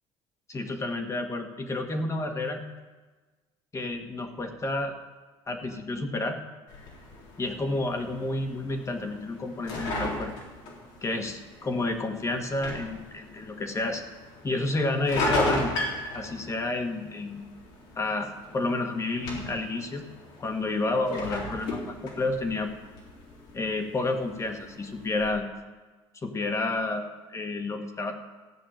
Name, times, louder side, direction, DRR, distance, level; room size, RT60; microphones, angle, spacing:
voice 1, 0.5-2.6 3.7-4.9 5.5-6.4 7.4-10.3 11.0-14.0 14.4-15.7 16.1-17.4 17.9-20.1 20.4-22.7 23.5-25.5 26.2-28.1, left 2 dB, 25° left, 5 dB, 1.6 m, -30 dB
sound 1, 6.7-25.3, left 2 dB, 85° left, 3.8 m, -36 dB
14.0 x 6.0 x 9.1 m, 1.3 s
supercardioid pair, 100°, 12 cm